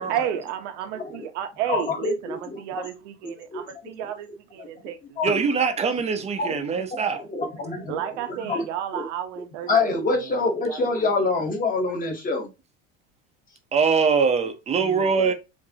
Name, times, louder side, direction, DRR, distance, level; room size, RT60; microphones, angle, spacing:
voice 1, 0.1-5.4 7.9-10.4 10.6-10.9, right 11 dB, 90° right, 0.9 m, -32 dB
voice 2, 1.0-1.3 1.7-2.4 2.7-2.9 3.5-3.6 4.0-4.1 5.2-5.3 6.4-6.6 7.3-7.9 8.4-8.7 8.9-9.1 9.7-12.5 14.8-15.3, left 3 dB, 25° left, 1.0 m, -26 dB
voice 3, 5.2-7.2 13.7-15.3, right 5 dB, 20° right, 0.5 m, -22 dB
4.7 x 2.6 x 2.7 m
cardioid pair, 145°, 35 cm